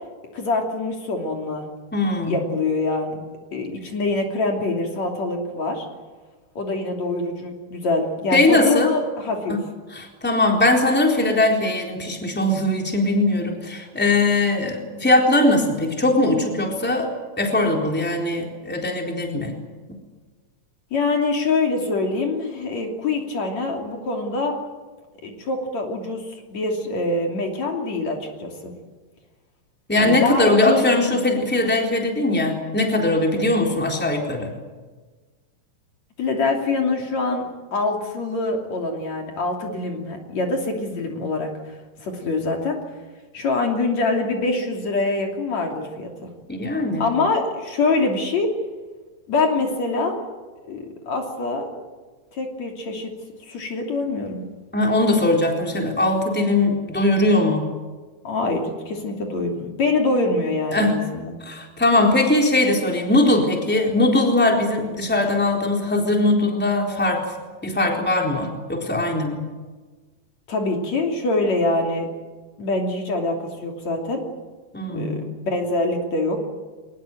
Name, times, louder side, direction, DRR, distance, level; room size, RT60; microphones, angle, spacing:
voice 1, 0.3-1.7 2.3-3.2 3.5-5.9 6.6-9.6 20.9-24.6 25.2-28.7 30.0-30.9 36.2-41.7 42.0-42.8 43.3-46.3 47.0-48.5 49.3-50.2 50.6-51.8 52.3-53.1 53.5-54.4 58.2-61.4 70.5-72.1 72.6-74.3 74.9-76.4, left 3 dB, 60° left, 2 dB, 4.2 m, -24 dB
voice 2, 1.9-2.4 8.3-8.9 9.9-17.1 17.4-19.5 29.9-34.5 46.5-47.0 54.7-57.7 60.7-61.0 61.4-67.3 67.6-69.4 74.7-75.2, left 2 dB, 5° left, 1 dB, 3.7 m, -20 dB
23.5 x 21.0 x 9.2 m, 1.3 s
omnidirectional pair, 3.6 m